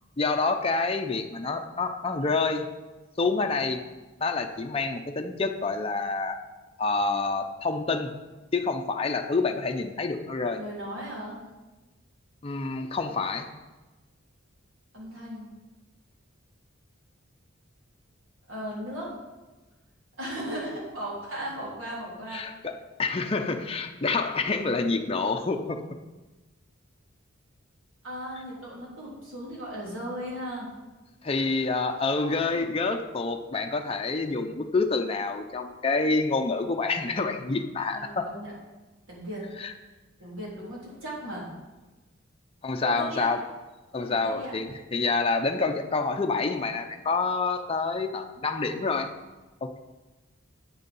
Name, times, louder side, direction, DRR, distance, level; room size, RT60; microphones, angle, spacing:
voice 1, 0.2-2.7 3.2-3.8 4.2-6.4 6.8-8.1 8.5-10.6 12.4-13.5 22.3-22.7 23.0-25.8 31.2-38.3 39.6-39.7 42.6-43.4 43.9-49.1 49.6-49.8, left 3 dB, 30° left, 4 dB, 0.6 m, -27 dB
voice 2, 10.5-11.4 14.9-15.5 18.5-19.1 20.2-22.4 28.0-30.7 32.1-32.7 37.9-38.5 39.1-39.4 40.2-41.5 42.8-43.3 44.1-44.5, equal, 75° right, -5 dB, 3.6 m, -37 dB
9.0 x 6.6 x 5.4 m, 1.2 s
head